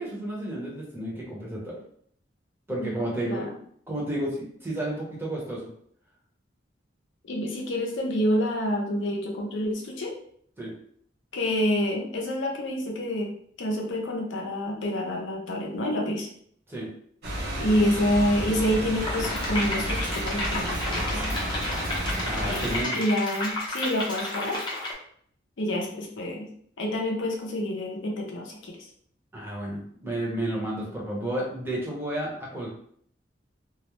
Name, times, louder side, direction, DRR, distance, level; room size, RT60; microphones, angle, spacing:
voice 1, 0.0-1.8 2.7-3.5 3.9-5.7 10.6-10.7 16.7-16.9 22.2-23.0 29.3-32.7, right 1 dB, 10° right, -4 dB, 0.7 m, -32 dB
voice 2, 2.8-3.5 7.2-10.1 11.3-13.3 13.6-16.3 17.6-21.3 22.5-24.6 25.6-26.5 26.8-28.8, left 1 dB, 80° left, 0 dB, 0.6 m, -28 dB
sound 1, 17.2-22.8, right 1 dB, 60° right, 0.7 m, -31 dB
sound 2, 19.0-24.9, left 1 dB, 25° left, 0.6 m, -32 dB
2.3 x 2.0 x 3.0 m, 0.62 s
head